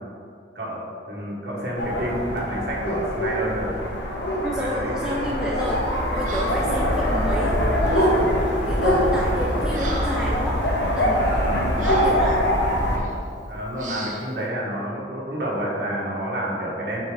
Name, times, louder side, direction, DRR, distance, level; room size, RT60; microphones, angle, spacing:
voice 1, 1.1-3.7 4.5-5.1 11.4-11.7 13.5-17.0, equal, 60° right, -5 dB, 1.5 m, -29 dB
sound 1, 1.8-13.0, equal, 75° left, 1.0 m, -23 dB
voice 2, 4.4-10.6 11.0-11.5 11.8-12.4, equal, 5° right, -5 dB, 0.4 m, -29 dB
Breathing, 5.7-5.9 6.2-6.8 7.8-8.1 8.7-8.9 9.3-10.4 10.8-11.0 11.8-12.2 12.9-13.1 13.8-14.3, right 2 dB, 40° right, 0.7 m, -36 dB
5.4 x 4.0 x 5.0 m, 2.4 s
head